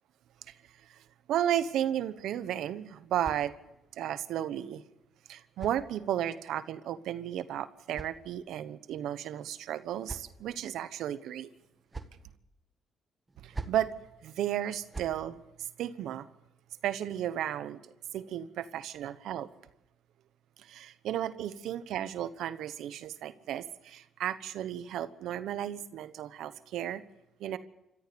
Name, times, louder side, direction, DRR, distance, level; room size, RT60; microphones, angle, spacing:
voice 1, 0.5-3.5 3.9-4.8 5.3-11.5 13.4-13.9 14.2-16.3 16.8-19.5 20.6-27.0 27.4-27.6, right 11 dB, 80° right, 12 dB, 1.1 m, -34 dB
Golf Swing, 2.8-4.0 5.0-6.4 7.4-8.7 9.6-10.6 11.5-12.3 13.3-13.9 14.7-15.2, right 3 dB, 20° right, 1.7 m, -46 dB
27.0 x 14.0 x 7.0 m, 0.90 s
cardioid pair, 90°, 0 cm